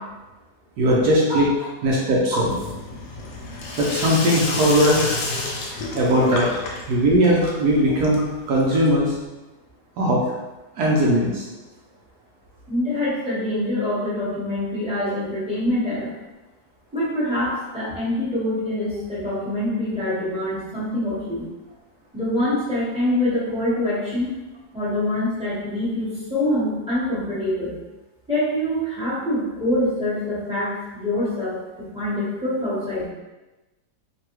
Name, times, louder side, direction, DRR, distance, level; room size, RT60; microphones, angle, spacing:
voice 1, 0.8-1.5 1.8-2.5 3.8-5.0 6.0-6.5 6.9-9.1 10.0-10.2 10.8-11.4, equal, 70° right, -3 dB, 1.0 m, -19 dB
Sink (filling or washing), 2.4-9.2, left 2 dB, 75° left, 1.1 m, -31 dB
voice 2, 12.7-16.1 16.9-21.4 22.1-24.3 24.7-27.7 28.3-33.1, left 1 dB, 5° right, -11 dB, 1.0 m, -25 dB
3.2 x 2.2 x 3.0 m, 1.1 s
omnidirectional pair, 1.9 m